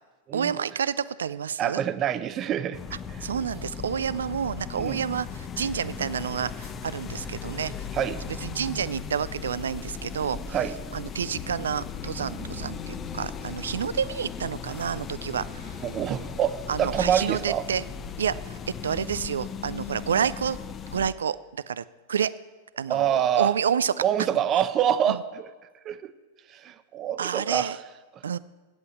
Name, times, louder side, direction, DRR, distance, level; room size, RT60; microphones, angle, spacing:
voice 1, 0.3-1.8 3.2-7.7 8.4-10.6 10.9-15.8 16.7-17.8 18.2-18.6 18.8-20.6 20.9-21.8 22.1-22.3 22.8-23.9 25.1-25.2 27.2-27.8 28.2-28.4, right 7 dB, 85° right, 17 dB, 0.3 m, -29 dB
voice 2, 1.6-2.8 3.2-3.3 4.8-5.0 7.9-8.2 10.5-10.7 12.2-12.7 15.8-17.6 22.9-23.5 24.0-25.5 25.9-26.1 26.5-27.8, right 9 dB, 35° right, 13 dB, 0.7 m, -26 dB
sound 1, 2.7-21.1, left 6 dB, 30° left, 0.7 m, -37 dB
8.5 x 7.9 x 8.4 m, 1.3 s
hypercardioid pair, 110°, 0 cm